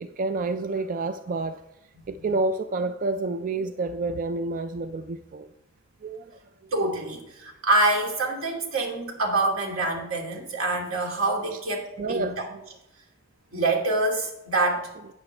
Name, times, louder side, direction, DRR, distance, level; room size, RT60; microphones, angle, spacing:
voice 1, 0.0-1.7 2.1-5.5 6.0-6.7 11.5-11.6 12.0-12.6, right 3 dB, 40° right, 0.4 m, -29 dB
voice 2, 6.7-12.3 13.5-14.9, right 2 dB, 85° right, 2.4 m, -26 dB
12.0 x 8.9 x 3.3 m
head